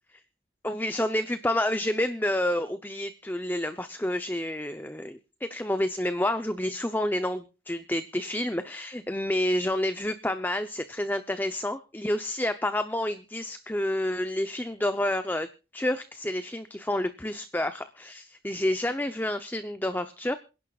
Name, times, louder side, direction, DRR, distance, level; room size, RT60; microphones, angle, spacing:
voice 1, 0.6-15.5 15.7-20.4, left 1 dB, 10° left, 9 dB, 0.7 m, -29 dB
27.0 x 11.0 x 2.4 m, 0.32 s
head